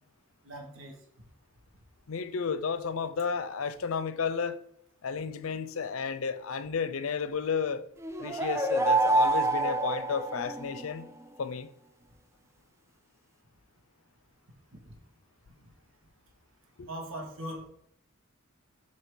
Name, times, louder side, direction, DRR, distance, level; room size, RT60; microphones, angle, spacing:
voice 1, 0.4-1.0 14.9-15.0 16.9-17.7, right 1 dB, 65° right, 1.3 m, -40 dB
voice 2, 2.1-4.6 5.0-7.9 8.2-11.1 11.4-11.7 16.8-16.9, left 5 dB, 75° left, 0.5 m, -32 dB
sound 1, 8.0-10.9, right 2 dB, 15° right, 0.4 m, -27 dB
7.6 x 2.9 x 4.9 m
head